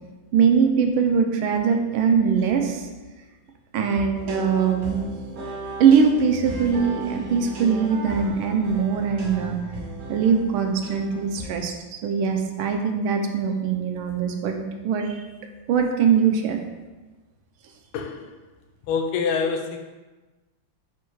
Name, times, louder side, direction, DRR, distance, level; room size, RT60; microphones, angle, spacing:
voice 1, 0.3-2.9 3.7-5.0 5.8-9.6 10.1-15.2 15.7-16.6, right 6 dB, 80° right, 4 dB, 1.4 m, -21 dB
sound 1, 4.1-11.5, right 1 dB, 55° right, 1.0 m, -35 dB
voice 2, 17.9-18.3 18.9-19.8, left 5 dB, 85° left, 4 dB, 1.4 m, -25 dB
4.4 x 2.3 x 4.5 m, 1.2 s
omnidirectional pair, 2.3 m